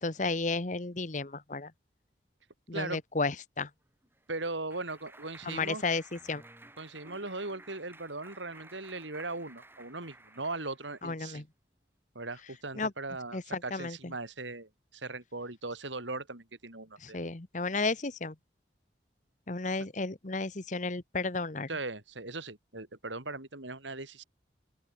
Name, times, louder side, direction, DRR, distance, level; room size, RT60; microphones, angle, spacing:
voice 1, 0.0-1.7 2.7-3.7 5.4-6.4 11.0-11.4 12.8-12.9 13.3-14.0 17.0-18.3 19.5-21.7, left 3 dB, 40° left, 1.2 m, -33 dB
Clapping, 3.9-11.1, right 2 dB, 10° right, 3.9 m, -54 dB
voice 2, 4.3-5.8 6.8-11.4 12.2-17.2 21.7-24.2, right 3 dB, 85° right, 5.2 m, -39 dB
open air
head